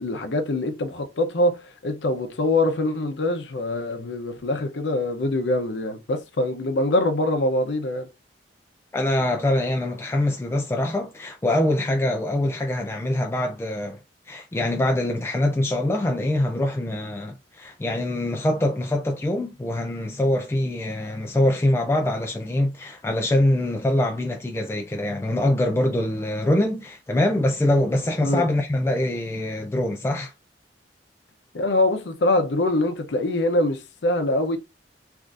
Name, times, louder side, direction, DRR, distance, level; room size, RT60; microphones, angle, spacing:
voice 1, 0.0-8.1 28.2-28.4 31.5-34.6, left 1 dB, 80° left, 0.6 m, -24 dB
voice 2, 8.9-14.0 14.3-30.3, left 1 dB, 15° left, 0.3 m, -24 dB
3.5 x 2.5 x 2.5 m
head